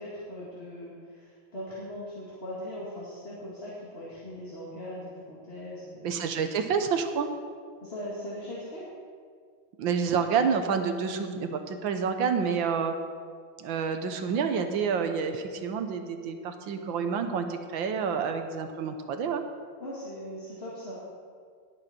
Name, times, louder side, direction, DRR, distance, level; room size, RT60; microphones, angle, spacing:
voice 1, 0.0-6.2 7.8-8.8 19.8-21.0, equal, 30° left, -7 dB, 2.2 m, -40 dB
voice 2, 6.0-7.3 9.8-12.9 13.6-19.4, right 6 dB, 70° right, 7 dB, 1.6 m, -28 dB
20.0 x 8.1 x 4.3 m, 2.1 s
omnidirectional pair, 2.3 m